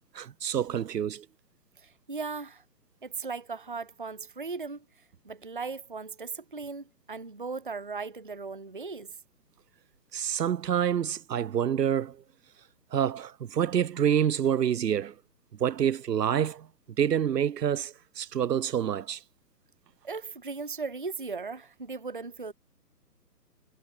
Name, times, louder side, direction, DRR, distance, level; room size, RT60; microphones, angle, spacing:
voice 1, 0.1-1.3 10.1-12.2 12.9-15.1 15.6-16.7 17.0-19.2, right 9 dB, 80° right, 0.5 m, -27 dB
voice 2, 1.8-2.6 3.0-4.9 5.2-9.1 20.0-22.5, right 4 dB, 35° right, 0.4 m, -37 dB
figure-of-eight pair, 135°, 48 cm